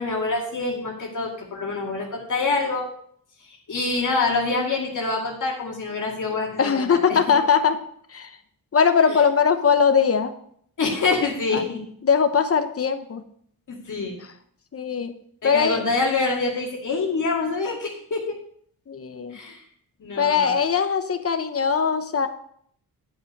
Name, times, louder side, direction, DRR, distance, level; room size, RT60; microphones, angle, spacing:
voice 1, 0.0-2.9 3.4-7.2 9.1-9.2 10.8-11.8 13.7-14.2 15.4-18.4 19.3-19.6 20.0-20.6, left 3 dB, 55° left, -2 dB, 2.2 m, -26 dB
voice 2, 6.6-7.8 8.1-8.3 8.7-10.3 11.5-11.6 12.0-13.2 14.7-15.1 15.4-15.8 18.9-19.4 20.2-22.3, left 6 dB, 40° left, 8 dB, 1.0 m, -20 dB
10.5 x 5.6 x 5.4 m, 0.64 s
wide cardioid pair, 125°, 36 cm